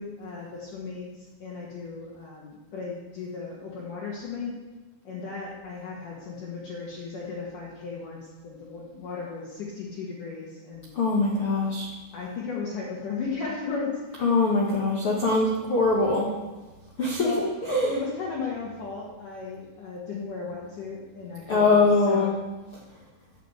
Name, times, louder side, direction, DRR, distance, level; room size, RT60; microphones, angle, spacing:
voice 1, 0.0-4.6 5.0-10.9 12.1-14.2 17.2-17.5 17.9-21.8 22.1-22.3, left 4 dB, 55° left, -5 dB, 2.9 m, -35 dB
voice 2, 10.9-11.9 14.2-16.3 17.0-17.9 21.5-22.4, left 3 dB, 70° left, -3 dB, 1.2 m, -22 dB
11.0 x 6.7 x 8.1 m, 1.2 s
omnidirectional pair, 5.0 m